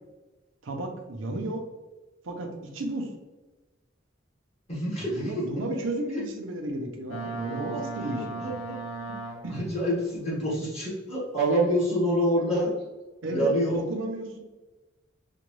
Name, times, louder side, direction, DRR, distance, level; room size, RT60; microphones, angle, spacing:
voice 1, 0.6-1.6 2.2-3.1 5.0-8.5 9.4-9.6 13.2-14.4, right 1 dB, 85° right, 2 dB, 0.7 m, -33 dB
voice 2, 4.7-5.6 8.0-8.8 9.6-12.7 13.3-13.8, equal, 35° left, -6 dB, 1.2 m, -27 dB
Boat Water vehicle, 7.1-9.8, right 3 dB, 75° left, 0.5 m, -36 dB
4.9 x 2.2 x 3.1 m, 1.1 s
head